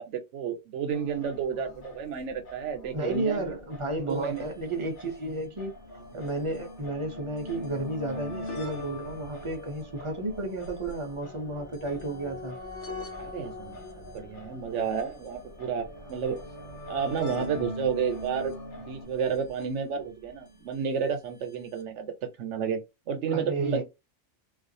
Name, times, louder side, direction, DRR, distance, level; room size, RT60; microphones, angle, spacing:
voice 1, 0.0-3.5 4.1-4.5 13.2-16.4 16.9-18.5 18.9-22.1 22.4-22.8 23.1-23.8, right 6 dB, 75° right, 0.9 m, -31 dB
Singing, 0.9-19.0, equal, 50° left, 0.8 m, -49 dB
voice 2, 2.9-5.7 6.1-12.6 23.3-23.8, right 2 dB, 40° right, 0.5 m, -32 dB
sound 1, 4.1-4.2 4.4-4.5 5.3-20.6 21.5-21.6 21.8-21.9, left 2 dB, 70° left, 1.1 m, -42 dB
2.4 x 2.3 x 2.6 m
omnidirectional pair, 1.2 m